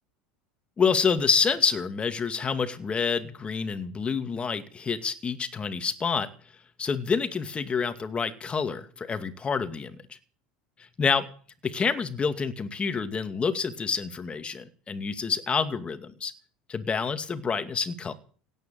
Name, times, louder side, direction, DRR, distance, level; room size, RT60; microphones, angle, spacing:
voice 1, 0.8-6.3 6.8-10.2 11.0-11.2 11.6-16.3 16.7-18.1, left 5 dB, 25° left, 11 dB, 2.3 m, -28 dB
17.0 x 9.3 x 9.2 m, 0.42 s
hypercardioid pair, 90°, 4 cm